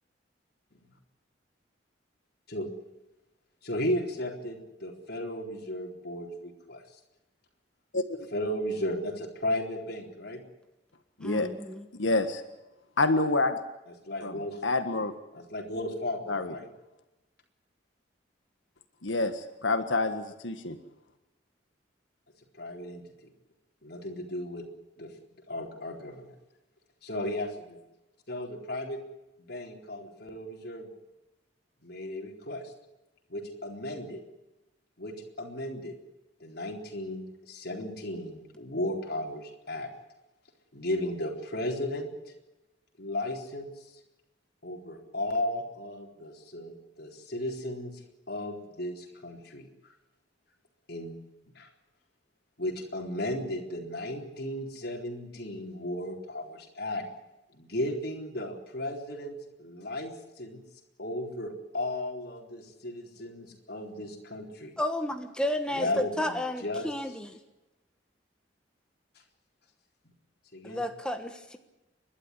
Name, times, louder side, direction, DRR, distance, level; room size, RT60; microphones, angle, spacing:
voice 1, 3.6-6.8 8.3-10.4 13.9-14.6 15.3-16.7 22.6-23.0 23.8-24.6 25.0-25.1 25.5-26.3 27.0-27.8 28.3-29.0 29.4-30.9 31.8-32.7 33.3-34.2 35.0-35.9 36.4-39.9 40.7-42.1 43.0-44.0 44.6-49.7 50.9-51.2 51.6-51.7 52.6-57.0 57.5-60.6 61.0-64.7 65.7-67.1 70.5-70.8, left 1 dB, 60° left, 2 dB, 4.0 m, -35 dB
voice 2, 11.2-11.9 64.8-67.4 70.6-71.6, left 1 dB, 5° left, 6 dB, 1.3 m, -32 dB
voice 3, 12.0-12.4 13.0-13.6 14.2-14.3 14.6-15.1 16.3-16.5 19.0-20.8, left 2 dB, 90° left, 8 dB, 1.6 m, -27 dB
29.5 x 12.0 x 10.0 m, 0.99 s
head